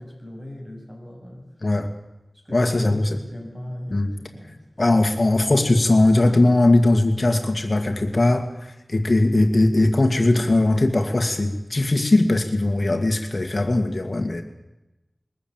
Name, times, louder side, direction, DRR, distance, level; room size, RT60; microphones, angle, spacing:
voice 1, 0.0-1.5 2.3-4.8, left 1 dB, 25° right, 1 dB, 7.7 m, -38 dB
voice 2, 1.6-1.9 2.5-3.1 3.9-4.1 4.8-14.4, left 2 dB, 55° left, 5 dB, 2.1 m, -19 dB
22.0 x 14.0 x 9.0 m, 0.99 s
wide cardioid pair, 50°, 0 cm